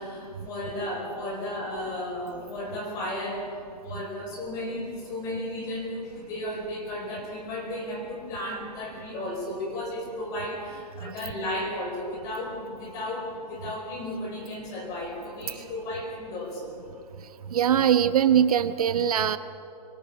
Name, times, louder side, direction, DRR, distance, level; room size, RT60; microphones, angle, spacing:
voice 1, 0.0-3.5 3.8-16.8, left 1 dB, 15° left, 1 dB, 5.0 m, -34 dB
voice 2, 17.5-19.4, right 9 dB, 60° right, 10 dB, 1.1 m, -22 dB
24.5 x 23.5 x 8.6 m, 2.5 s
hypercardioid pair, 180°, 21 cm